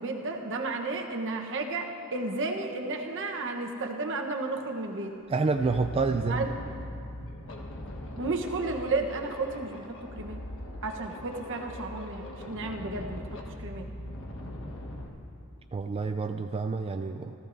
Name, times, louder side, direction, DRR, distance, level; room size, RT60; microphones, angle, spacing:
voice 1, 0.0-5.1 6.3-6.5 8.2-10.4 10.8-13.2 13.6-13.9, right 3 dB, 60° right, 3 dB, 1.0 m, -33 dB
sound 1, 4.7-4.8 5.2-15.1, left 1 dB, 65° left, 1.3 m, -41 dB
voice 2, 5.3-6.4 15.7-17.3, right 4 dB, 25° right, 6 dB, 0.3 m, -28 dB
18.0 x 14.0 x 2.6 m, 2.7 s
head